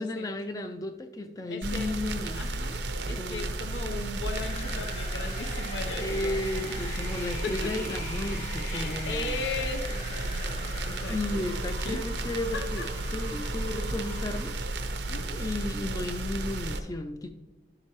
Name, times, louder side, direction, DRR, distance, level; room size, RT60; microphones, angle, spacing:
voice 1, 0.0-2.4 3.0-3.5 5.9-9.4 11.0-14.5 15.4-17.3, left 2 dB, 20° left, 7 dB, 0.4 m, -34 dB
voice 2, 1.5-1.9 2.3-6.4 6.7-7.0 7.4-7.9 8.7-12.0 12.5-12.9 15.1-15.4, left 3 dB, 85° left, 6 dB, 0.8 m, -38 dB
sound 1, 1.6-16.8, right 2 dB, 85° right, 0.7 m, -33 dB
sound 2, 4.3-14.5, left 3 dB, 40° left, 1.6 m, -43 dB
11.5 x 7.3 x 3.0 m, 1.2 s
head